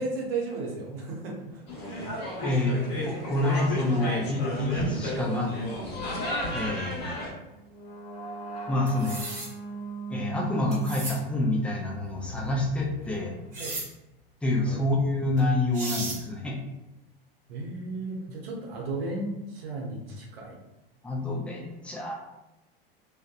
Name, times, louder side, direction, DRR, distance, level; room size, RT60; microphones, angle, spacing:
voice 1, 0.0-1.6 5.2-5.4 13.6-13.8 14.7-14.8 17.5-20.6, right 3 dB, 75° right, -2 dB, 0.8 m, -34 dB
sound 1, 1.7-7.3, left 1 dB, 35° left, 0.9 m, -32 dB
voice 2, 2.4-6.0 6.5-7.2 8.7-9.2 10.1-13.4 14.4-16.6 21.0-22.1, left 2 dB, 5° left, -1 dB, 0.3 m, -28 dB
sound 2, 5.9-13.7, right 2 dB, 80° left, 0.7 m, -39 dB
sound 3, 8.9-9.5 10.7-11.2 13.5-13.9 15.4-15.5 15.7-16.2, right 2 dB, 25° right, 1.1 m, -35 dB
2.6 x 2.2 x 2.3 m, 0.97 s
hypercardioid pair, 95°, 30 cm